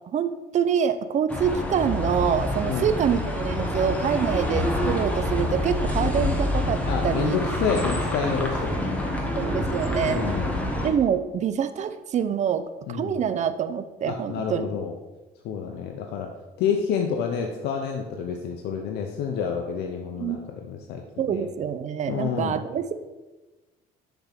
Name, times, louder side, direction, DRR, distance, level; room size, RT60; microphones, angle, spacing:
voice 1, 0.1-7.4 9.3-10.2 10.8-12.6 12.9-14.8 20.2-20.4 21.2-22.9, right 8 dB, 45° right, 11 dB, 0.5 m, -26 dB
sound 1, 1.3-10.9, left 1 dB, 10° left, 1.2 m, -27 dB
voice 2, 2.6-2.9 6.9-9.0 10.0-10.5 12.9-13.2 14.1-15.0 15.4-16.3 16.6-21.0 21.3-21.5 22.1-22.6, left 7 dB, 80° left, 2 dB, 0.7 m, -29 dB
6.8 x 3.6 x 5.8 m, 1.1 s
cardioid pair, 110°, 17 cm